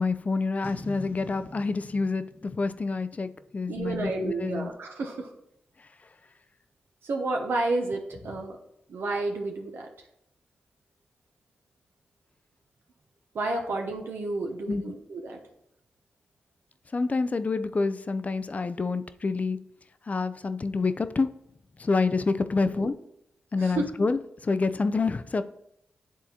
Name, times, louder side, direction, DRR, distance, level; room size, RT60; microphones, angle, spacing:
voice 1, 0.0-4.7 14.7-14.8 16.9-19.6 20.1-21.3 21.8-22.9 23.5-25.4, left 4 dB, 40° left, 12 dB, 0.4 m, -27 dB
Boom, 0.6-4.0, left 1 dB, 60° left, 1.1 m, -44 dB
voice 2, 3.7-5.3 7.0-8.6 8.9-9.9 13.3-15.4 22.6-22.9 23.5-23.9, right 2 dB, 75° right, 2 dB, 0.8 m, -31 dB
9.9 x 3.7 x 2.8 m, 0.78 s
cardioid pair, 55°, 4 cm